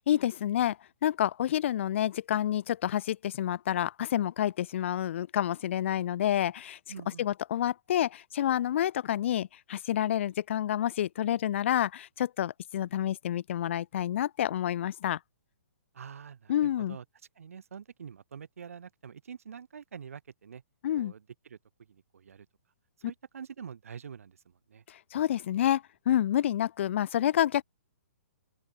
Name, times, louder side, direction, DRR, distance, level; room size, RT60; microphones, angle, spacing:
voice 1, 0.1-6.8 7.2-15.2 16.5-17.0 20.8-21.1 24.9-27.6, left 11 dB, 50° left, 4.0 m, -29 dB
voice 2, 6.9-7.3 15.9-17.0 17.4-20.6 20.9-21.6 21.9-22.5 23.0-24.8, right 7 dB, 65° right, 6.5 m, -46 dB
open air
figure-of-eight pair, 125°, 8 cm